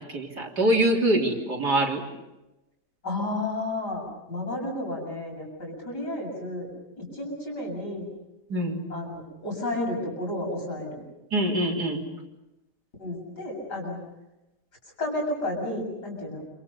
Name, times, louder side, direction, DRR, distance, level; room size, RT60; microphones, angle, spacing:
voice 1, 0.0-2.0 8.5-8.9 11.3-12.1, right 1 dB, 70° right, 0 dB, 4.0 m, -24 dB
voice 2, 3.0-6.7 7.0-8.0 8.9-11.0 13.0-14.0 15.0-16.4, left 1 dB, 80° left, 1 dB, 8.1 m, -32 dB
29.5 x 27.5 x 5.5 m, 0.97 s
omnidirectional pair, 1.8 m